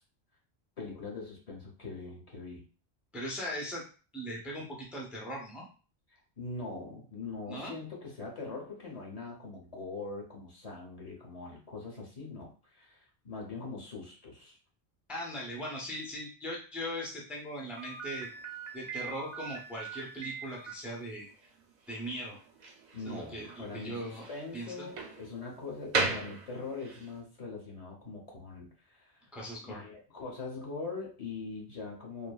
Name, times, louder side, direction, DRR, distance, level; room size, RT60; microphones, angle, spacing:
voice 1, 0.8-2.6 6.4-14.6 22.9-29.3 29.7-32.3, left 3 dB, 40° left, -1 dB, 0.8 m, -42 dB
voice 2, 3.1-3.8 4.1-5.7 7.5-7.8 15.1-18.3 18.7-21.3 21.9-22.4 23.0-24.3 24.5-24.9 29.3-29.8, equal, ahead, -2 dB, 0.5 m, -39 dB
Slam, 17.8-27.1, right 4 dB, 55° right, 0.5 m, -39 dB
3.2 x 2.1 x 2.3 m, 0.36 s
omnidirectional pair, 1.1 m